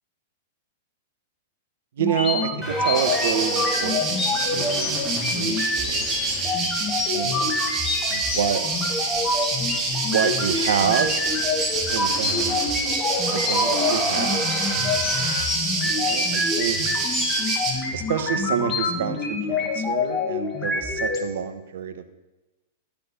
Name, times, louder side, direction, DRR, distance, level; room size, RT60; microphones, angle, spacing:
sound 1, 2.0-21.2, left 3 dB, 25° left, 2.2 m, -27 dB
voice 1, 2.0-6.4 7.1-7.6 8.1-8.9 10.1-11.2 11.9-12.6 13.3-15.2 15.8-16.8 17.9-22.1, right 8 dB, 65° right, 10 dB, 1.2 m, -28 dB
sound 2, 2.6-7.7 8.0-8.1 8.4-8.5 8.7-15.4, right 1 dB, 5° right, 4.0 m, -34 dB
sound 3, 2.9-17.7, right 3 dB, 30° right, 2.6 m, -27 dB
12.0 x 6.9 x 5.5 m, 1.1 s
figure-of-eight pair, 100°, 0 cm